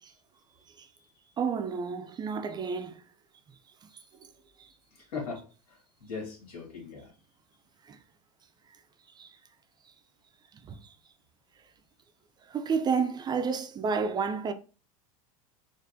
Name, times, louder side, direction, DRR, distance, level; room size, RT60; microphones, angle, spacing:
voice 1, 0.5-1.3 4.9-5.4 6.1-7.1, left 4 dB, 85° left, 1.8 m, -40 dB
voice 2, 1.4-3.0 4.6-4.7 7.9-8.0 9.2-9.3 10.6-10.8 12.5-14.5, right 5 dB, 25° right, 0.3 m, -30 dB
4.2 x 2.5 x 2.6 m
hypercardioid pair, 105°, 19 cm